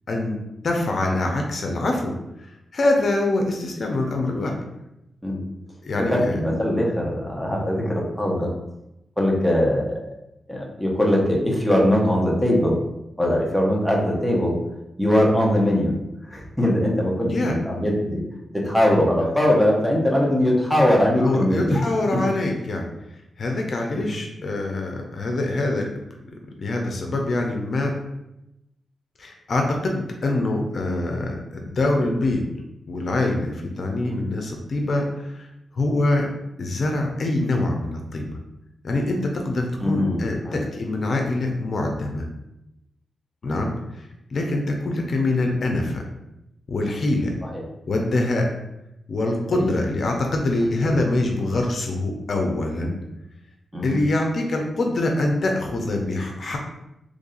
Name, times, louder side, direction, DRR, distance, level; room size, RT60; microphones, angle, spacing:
voice 1, 0.6-2.1 2.7-4.5 5.8-6.4 17.2-17.6 21.2-22.9 23.4-25.9 26.6-28.0 29.2-32.4 32.9-35.5 35.8-36.3 36.6-38.3 38.8-42.2 43.4-43.7 44.3-46.0 46.7-47.3 47.9-48.5 49.1-52.9 53.8-56.6, left 2 dB, 55° left, 2 dB, 0.6 m, -24 dB
voice 2, 5.9-8.5 9.2-10.0 10.5-12.8 13.2-14.6 15.0-15.9 16.3-18.2 18.5-22.2 23.9-24.1 39.8-40.6 47.4-47.6 49.5-49.7 50.8-51.0 53.7-54.0, left 1 dB, ahead, -2 dB, 0.9 m, -21 dB
3.2 x 2.6 x 3.8 m, 0.89 s
cardioid pair, 85°, 0 cm